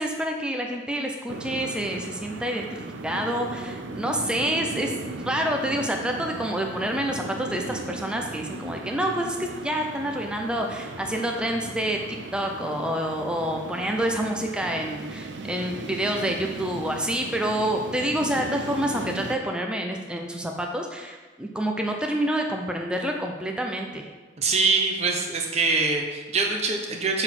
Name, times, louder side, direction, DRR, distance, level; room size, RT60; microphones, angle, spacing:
voice 1, 0.0-2.7 3.0-12.0 12.3-24.1, right 1 dB, 5° right, 2 dB, 0.6 m, -28 dB
sound 1, 1.3-19.4, right 3 dB, 85° right, 0.6 m, -37 dB
voice 2, 24.4-27.2, right 4 dB, 35° right, 2 dB, 0.9 m, -24 dB
6.9 x 3.9 x 5.9 m, 1.3 s
head